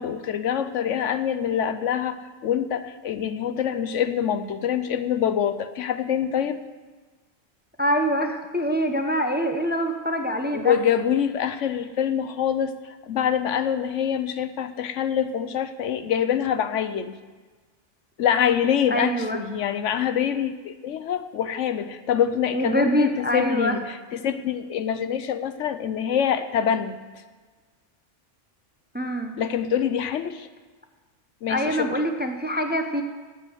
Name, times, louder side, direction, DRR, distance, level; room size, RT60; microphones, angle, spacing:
voice 1, 0.0-6.6 10.5-17.2 18.2-27.0 29.4-30.5 31.4-31.9, left 8 dB, 75° left, 11 dB, 1.0 m, -25 dB
voice 2, 7.8-10.7 18.9-19.4 22.5-23.8 28.9-29.3 31.5-33.0, equal, 10° right, 5 dB, 0.7 m, -24 dB
9.6 x 8.0 x 9.6 m, 1.3 s
omnidirectional pair, 1.3 m